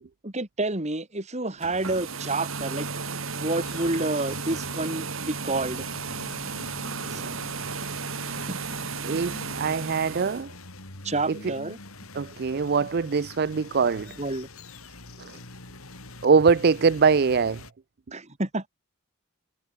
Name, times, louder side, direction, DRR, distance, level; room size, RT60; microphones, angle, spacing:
voice 1, 0.2-2.9 3.3-5.9 7.1-7.4 8.5-8.9 11.0-11.8 14.2-14.5 18.1-18.7, right 2 dB, 30° right, 2.6 m, -29 dB
sound 1, 1.5-10.4, right 5 dB, 70° right, 3.3 m, -34 dB
sound 2, 3.5-17.7, left 2 dB, 80° left, 5.4 m, -45 dB
voice 2, 9.0-10.5 11.3-11.5 12.1-14.2 15.2-15.4 16.2-17.6, right 5 dB, 50° right, 0.5 m, -23 dB
head